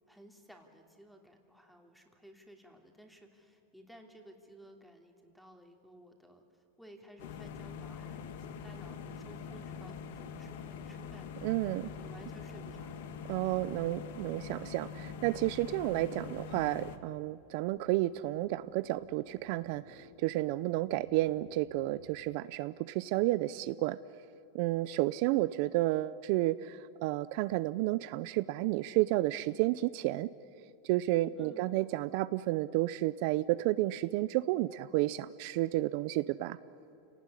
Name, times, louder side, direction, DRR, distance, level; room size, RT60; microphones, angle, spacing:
voice 1, 0.1-13.1 31.3-31.8, equal, ahead, 2 dB, 2.9 m, -56 dB
sound 1, 7.2-17.0, left 6 dB, 70° left, 1.6 m, -44 dB
voice 2, 11.4-11.9 13.3-24.0 24.5-30.3 30.8-36.6, right 17 dB, 60° right, 15 dB, 0.5 m, -31 dB
sound 2, 14.8-22.2, left 6 dB, 85° left, 3.4 m, -59 dB
29.0 x 18.0 x 9.9 m, 2.8 s
supercardioid pair, 135°, 0 cm